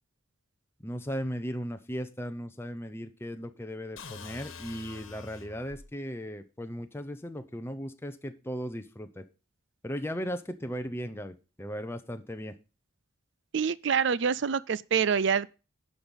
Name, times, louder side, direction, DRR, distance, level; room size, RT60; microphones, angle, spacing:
voice 1, 0.8-9.2 9.8-12.5, equal, 10° left, 0.7 m, -37 dB
sound 1, 4.0-5.9, left 5 dB, 75° left, 1.4 m, -45 dB
voice 2, 13.5-15.5, right 6 dB, 60° right, 0.4 m, -26 dB
11.0 x 5.3 x 5.6 m
head